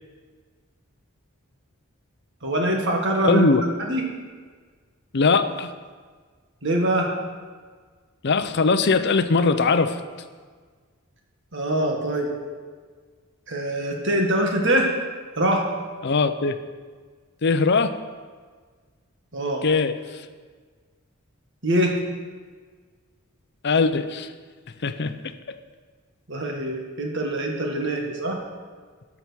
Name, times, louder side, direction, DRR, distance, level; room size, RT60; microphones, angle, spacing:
voice 1, 2.4-3.5 3.8-4.0 6.6-7.1 11.5-12.3 13.5-14.9 15.4-15.6 19.3-19.6 21.6-22.0 26.3-28.4, right 1 dB, 55° right, 1 dB, 1.7 m, -23 dB
voice 2, 3.2-3.6 5.1-5.7 8.2-10.0 16.0-16.6 17.4-18.0 19.6-20.2 23.6-24.3 24.8-25.1, left 4 dB, 50° left, 11 dB, 0.6 m, -20 dB
12.5 x 5.9 x 6.3 m, 1.6 s
head